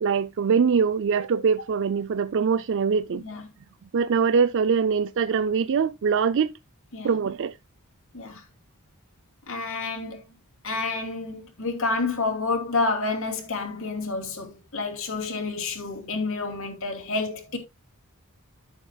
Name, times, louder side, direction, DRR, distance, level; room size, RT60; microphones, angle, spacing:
voice 1, 0.0-3.2 3.9-6.5 7.0-7.6, right 6 dB, 55° right, 0.4 m, -23 dB
voice 2, 9.5-10.2 10.6-17.6, left 3 dB, 60° left, 2.7 m, -29 dB
13.5 x 7.3 x 2.3 m
head